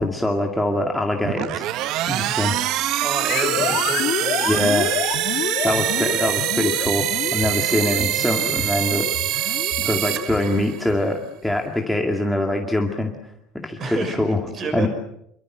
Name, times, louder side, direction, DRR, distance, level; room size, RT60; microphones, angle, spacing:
voice 1, 0.0-2.6 4.4-5.0 5.6-13.1 13.5-14.4 14.7-14.9, left 1 dB, ahead, 1 dB, 2.2 m, -24 dB
sound 1, 1.2-10.9, right 14 dB, 50° right, 0.9 m, -24 dB
voice 2, 3.0-4.5 13.8-14.2 14.5-14.9, right 4 dB, 30° right, 9 dB, 6.0 m, -29 dB
sound 2, 3.3-11.4, left 12 dB, 50° left, 3.0 m, -29 dB
28.0 x 24.0 x 7.8 m, 0.76 s
cardioid pair, 170°, 0 cm